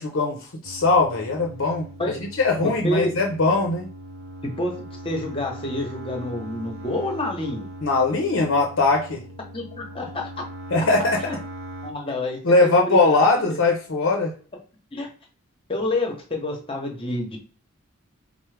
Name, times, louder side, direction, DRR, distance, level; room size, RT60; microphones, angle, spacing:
voice 1, 0.0-3.9 7.8-9.2 10.7-11.2 12.4-14.3, left 3 dB, 60° left, 1 dB, 0.6 m, -21 dB
sound 1, 0.6-11.9, right 1 dB, 85° right, 0.6 m, -40 dB
voice 2, 2.6-3.1 4.4-7.7 9.5-10.4 11.2-11.3 11.8-13.0 13.4-13.6 14.9-15.1 15.7-17.4, left 1 dB, 25° left, 2 dB, 0.8 m, -28 dB
4.4 x 2.0 x 3.3 m, 0.41 s
head